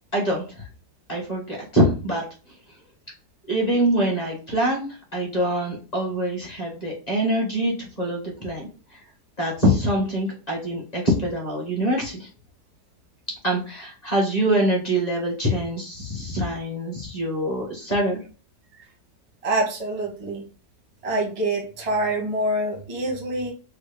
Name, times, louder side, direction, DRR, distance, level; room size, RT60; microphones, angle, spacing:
voice 1, 0.1-0.6 1.1-2.2 3.5-9.0 9.4-12.3 13.4-18.2, right 1 dB, 30° left, -2 dB, 1.0 m, -24 dB
voice 2, 19.4-20.4 21.0-23.5, right 1 dB, 30° right, 1 dB, 0.6 m, -26 dB
3.4 x 2.2 x 3.4 m, 0.35 s
omnidirectional pair, 1.8 m